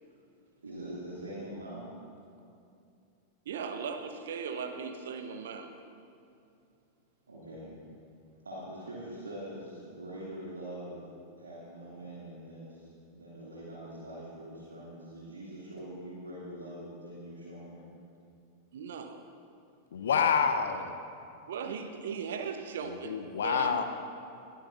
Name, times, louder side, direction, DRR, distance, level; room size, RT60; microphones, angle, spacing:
voice 1, 0.6-1.9 7.3-7.8 8.4-11.0 11.4-17.9, right 1 dB, 75° right, -7 dB, 2.5 m, -43 dB
voice 2, 3.4-5.7 18.7-19.2 21.5-23.1 23.4-23.8, right 6 dB, 60° right, 6 dB, 1.0 m, -37 dB
voice 3, 19.9-20.9 22.8-23.8, left 6 dB, 65° left, 7 dB, 0.7 m, -28 dB
21.5 x 13.5 x 2.6 m, 2.5 s
figure-of-eight pair, 90°, 0 cm